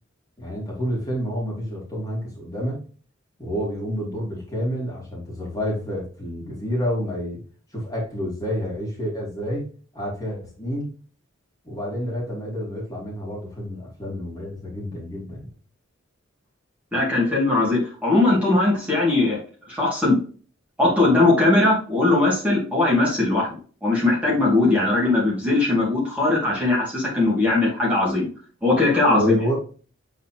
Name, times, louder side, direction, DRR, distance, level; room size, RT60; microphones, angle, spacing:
voice 1, 0.4-2.8 3.4-7.4 7.7-9.6 9.9-10.9 11.6-15.5 24.7-24.8 29.0-29.6, equal, 20° left, -4 dB, 2.7 m, -29 dB
voice 2, 16.9-19.4 19.7-20.2 20.8-28.3 28.6-29.4, left 2 dB, 5° right, -6 dB, 2.4 m, -20 dB
8.0 x 4.1 x 3.0 m, 0.40 s
head